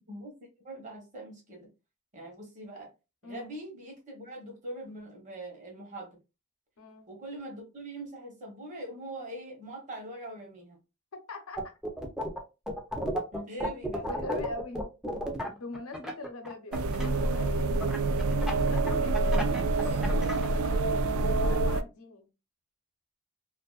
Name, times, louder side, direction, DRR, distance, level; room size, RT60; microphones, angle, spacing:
voice 1, 0.6-1.7 2.1-2.9 3.2-6.2 7.1-10.8 13.3-14.1, right 1 dB, 35° right, 0.9 m, -42 dB
voice 2, 11.3-11.6 14.1-14.9 15.5-17.8 18.4-21.1 21.4-22.3, left 2 dB, 85° left, 0.7 m, -42 dB
sound 1, 11.6-12.4 12.7-17.1 17.8-20.5, equal, 5° right, 0.4 m, -33 dB
sound 2, 16.7-21.8, right 3 dB, 75° right, 0.3 m, -27 dB
2.5 x 2.5 x 2.3 m
head